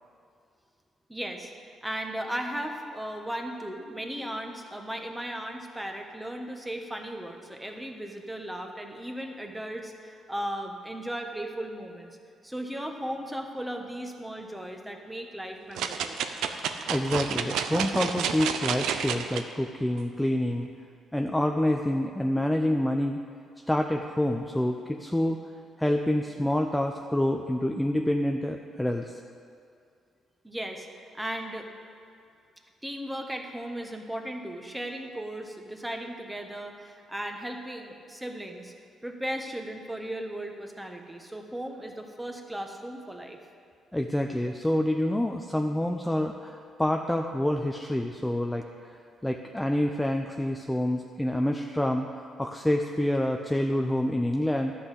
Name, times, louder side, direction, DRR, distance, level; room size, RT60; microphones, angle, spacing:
voice 1, 1.1-1.5 1.8-12.2 12.4-16.2 30.4-30.9 31.1-31.7 32.8-38.7 39.0-43.4, right 1 dB, 10° right, 3 dB, 1.2 m, -36 dB
sound 1, 15.7-19.4 20.0-20.1, right 7 dB, 85° right, 0.6 m, -30 dB
voice 2, 16.9-20.7 21.1-23.2 23.7-25.4 25.8-29.1 43.9-48.6 49.2-54.7, left 1 dB, 10° left, 3 dB, 0.6 m, -27 dB
11.5 x 5.8 x 8.3 m, 2.3 s
cardioid pair, 90°, 0 cm